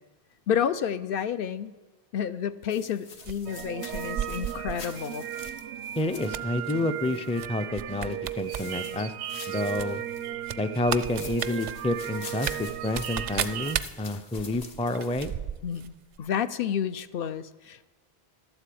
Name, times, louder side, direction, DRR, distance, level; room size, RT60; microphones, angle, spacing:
voice 1, 0.5-1.7 2.1-5.3 15.6-17.9, left 8 dB, 65° left, 13 dB, 0.7 m, -30 dB
sound 1, 2.7-7.4 8.2-10.3 10.9-15.3, left 4 dB, 90° left, 1.6 m, -46 dB
sound 2, 3.2-4.8 5.3-5.6 6.0-6.7 7.4-7.5 7.7-8.6 8.9-9.0 9.8-15.9 16.1-16.2, right 9 dB, 55° right, 0.5 m, -34 dB
sound 3, 3.5-13.8, right 11 dB, 90° right, 0.9 m, -36 dB
voice 2, 6.0-9.1 9.5-10.0 10.6-15.3, left 2 dB, 10° left, 10 dB, 0.3 m, -29 dB
12.0 x 8.1 x 8.5 m, 1.2 s
omnidirectional pair, 1.1 m